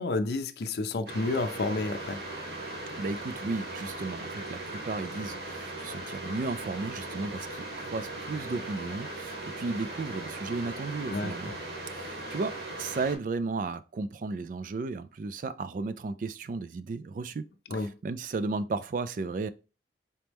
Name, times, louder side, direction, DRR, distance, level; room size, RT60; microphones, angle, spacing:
voice 1, 0.0-2.2 11.1-11.6 17.7-17.9, left 2 dB, 65° left, 0.5 m, -30 dB
sound 1, 1.1-13.2, right 2 dB, 65° right, 1.2 m, -39 dB
voice 2, 2.9-11.5 11.9-17.4 17.7-19.5, right 3 dB, 50° right, 0.3 m, -34 dB
4.3 x 3.0 x 3.4 m
head